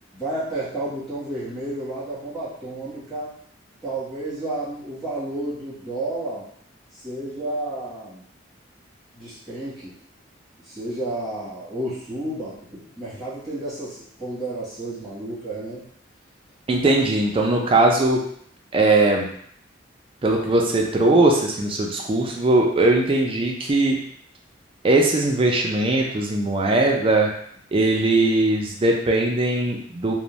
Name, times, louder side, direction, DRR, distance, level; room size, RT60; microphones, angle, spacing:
voice 1, 0.1-3.3 3.8-6.5 7.0-8.2 9.1-10.0 10.6-12.7 13.0-15.8 16.8-16.9, right 1 dB, ahead, -12 dB, 1.2 m, -31 dB
voice 2, 16.7-18.2 18.7-19.3 20.2-24.0 24.8-27.3 27.7-30.1, right 2 dB, 30° right, 1 dB, 0.4 m, -20 dB
2.5 x 2.1 x 3.0 m, 0.64 s
head